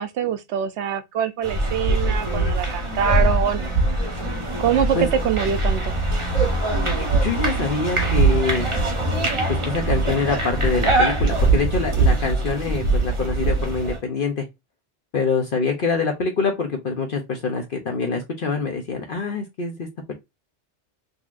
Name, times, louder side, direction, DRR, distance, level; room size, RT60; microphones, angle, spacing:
voice 1, 0.0-3.6 4.6-5.9, right 8 dB, 75° right, 0.9 m, -24 dB
sound 1, 1.4-14.0, right 2 dB, 30° right, 1.0 m, -22 dB
voice 2, 6.8-8.7 9.5-14.4 15.1-20.1, left 4 dB, 55° left, 0.9 m, -25 dB
4.0 x 2.8 x 2.4 m
omnidirectional pair, 1.2 m